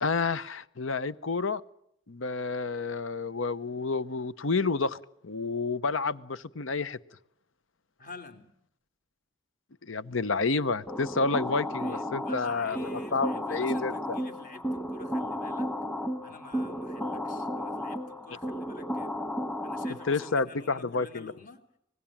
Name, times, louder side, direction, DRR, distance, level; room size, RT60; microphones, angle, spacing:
voice 1, 0.0-1.6 2.1-5.0 5.2-7.0 9.8-13.9 20.1-21.3, left 4 dB, 80° left, 16 dB, 0.9 m, -29 dB
voice 2, 8.0-8.5 11.8-15.7 16.2-19.2 19.6-21.6, left 3 dB, 45° left, 6 dB, 2.7 m, -48 dB
sound 1, 10.9-20.3, equal, 10° left, 1.7 m, -34 dB
25.5 x 20.0 x 7.3 m, 0.76 s
head